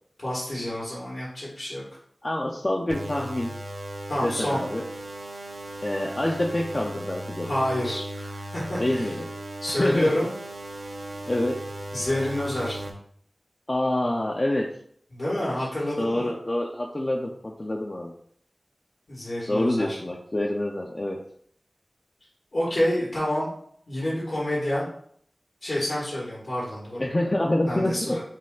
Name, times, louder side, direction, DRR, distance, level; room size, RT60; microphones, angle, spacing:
voice 1, 0.2-1.8 4.1-4.6 7.4-9.1 9.6-10.3 11.9-12.8 15.1-16.3 19.1-20.0 22.5-23.5 23.9-24.9 25.6-27.0 27.7-28.2, left 1 dB, 75° left, -8 dB, 1.5 m, -28 dB
voice 2, 2.2-3.5 4.2-4.8 5.8-7.5 8.8-9.3 9.8-10.1 11.3-11.6 13.7-14.7 16.0-18.1 19.5-21.2 27.0-28.2, left 1 dB, 35° left, -1 dB, 0.4 m, -26 dB
sound 1, 2.9-12.9, right 1 dB, 80° right, 0.6 m, -37 dB
4.1 x 2.3 x 3.7 m, 0.63 s
wide cardioid pair, 55°, 0 cm